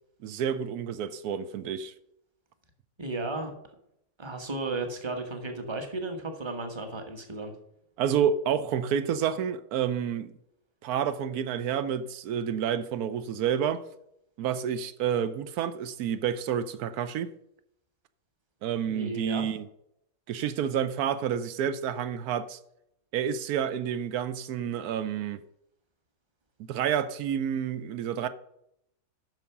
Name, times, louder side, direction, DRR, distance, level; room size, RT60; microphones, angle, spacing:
voice 1, 0.2-1.9 8.0-10.3 10.8-13.8 14.4-17.3 18.6-19.6 20.3-22.6 23.1-25.4 26.6-28.3, right 8 dB, 90° right, 1.2 m, -29 dB
voice 2, 3.0-3.5 4.2-7.5 18.9-19.4, right 2 dB, 20° right, 1.2 m, -34 dB
9.2 x 5.9 x 5.8 m
omnidirectional pair, 1.5 m